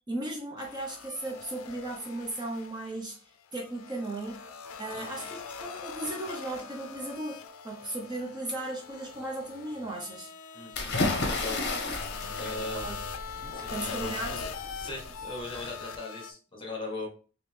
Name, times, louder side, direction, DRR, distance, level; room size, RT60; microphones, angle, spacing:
voice 1, 0.1-4.5 4.8-10.3 12.8-13.0 13.7-14.4, right 1 dB, 20° right, 0 dB, 0.5 m, -36 dB
sound 1, 0.6-3.2 3.5-16.3, left 5 dB, 75° left, 0.4 m, -42 dB
voice 2, 4.9-5.3 10.5-11.9 12.4-12.9 13.5-14.5 14.8-17.1, left 2 dB, 25° left, 0 dB, 1.1 m, -40 dB
sound 2, 10.7-15.6, left 2 dB, 55° left, 0.7 m, -33 dB
3.5 x 2.9 x 3.2 m, 0.39 s
head